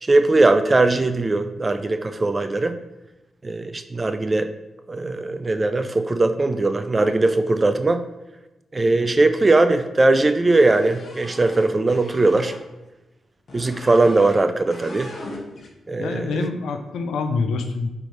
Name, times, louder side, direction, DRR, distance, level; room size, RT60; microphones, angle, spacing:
voice 1, 0.0-2.8 3.4-4.5 4.9-8.0 8.7-12.5 13.5-15.1 15.9-16.5, right 2 dB, 35° right, 10 dB, 0.4 m, -19 dB
sound 1, 10.5-12.6 13.5-14.4 14.7-15.7, left 2 dB, 55° left, 0.7 m, -39 dB
voice 2, 16.0-17.9, left 4 dB, 80° left, 7 dB, 0.4 m, -26 dB
3.8 x 3.3 x 3.2 m, 1.0 s
hypercardioid pair, 40°, 0 cm